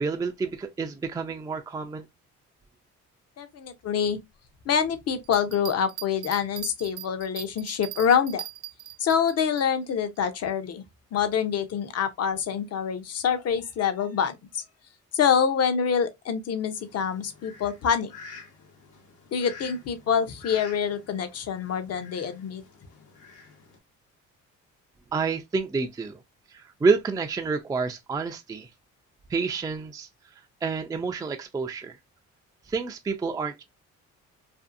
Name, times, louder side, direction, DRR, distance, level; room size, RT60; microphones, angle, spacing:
voice 1, 0.0-2.1 25.1-26.2 26.5-28.7 29.3-30.1 30.6-32.0 32.7-33.6, right 4 dB, 15° right, 0.3 m, -28 dB
voice 2, 3.4-4.2 4.7-8.4 9.0-10.8 11.1-14.4 15.1-18.1 19.3-22.6, left 7 dB, 55° left, 0.7 m, -26 dB
Bell, 5.2-9.7 10.2-10.3, right 14 dB, 90° right, 0.5 m, -40 dB
Fowl, 16.8-23.8, left 4 dB, 85° left, 1.0 m, -48 dB
2.6 x 2.5 x 2.4 m
cardioid pair, 90°, 30 cm